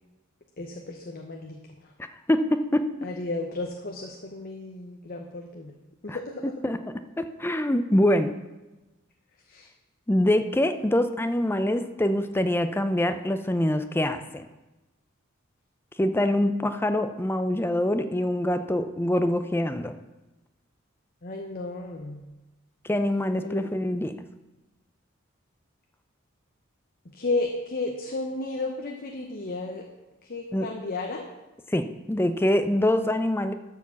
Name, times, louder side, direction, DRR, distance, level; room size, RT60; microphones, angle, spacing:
voice 1, 0.6-1.6 3.0-5.7 6.0-6.5 9.5-9.7 21.2-22.2 23.4-23.7 27.1-29.8 30.2-31.2, left 2 dB, 45° left, 2 dB, 0.9 m, -33 dB
voice 2, 2.3-2.9 6.1-6.2 6.6-6.8 7.2-8.4 10.1-14.4 16.0-19.9 22.8-24.1 30.5-30.7 31.7-33.5, left 1 dB, 10° left, 9 dB, 0.5 m, -24 dB
12.0 x 4.6 x 7.0 m, 1.1 s
head